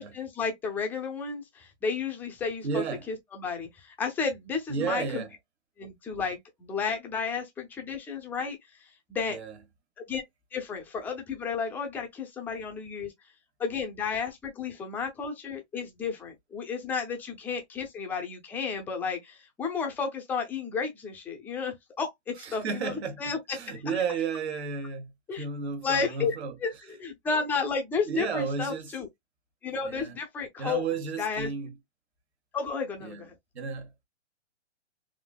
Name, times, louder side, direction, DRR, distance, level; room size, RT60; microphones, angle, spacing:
voice 1, 0.0-5.2 5.8-9.4 10.1-10.2 10.5-13.1 13.6-23.4 23.9-24.0 25.3-25.4 25.8-26.3 26.6-29.1 29.6-30.8 31.2-31.5 32.5-33.3, left 5 dB, 5° left, 0.5 m, -32 dB
voice 2, 2.6-3.1 4.7-5.3 9.3-9.5 22.4-23.2 23.5-25.1 25.4-26.5 28.1-28.9 29.8-30.2 30.6-31.7 33.0-33.2 33.5-34.0, right 5 dB, 65° right, 1.3 m, -32 dB
4.2 x 2.6 x 2.2 m
hypercardioid pair, 140°, 35 cm